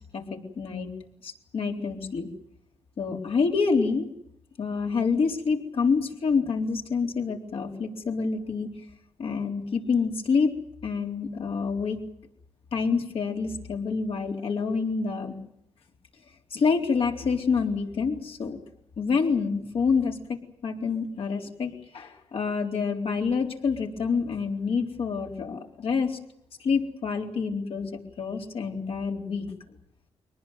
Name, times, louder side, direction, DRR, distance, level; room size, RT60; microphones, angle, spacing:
voice 1, 0.1-0.9 1.2-2.3 3.0-4.1 4.6-8.7 9.2-10.5 10.8-12.0 12.7-15.3 16.5-18.6 19.0-26.2 26.6-27.9 28.2-29.5, left 5 dB, 65° left, 1 dB, 4.0 m, -27 dB
23.5 x 19.5 x 9.4 m, 0.73 s
cardioid pair, 110°, 11 cm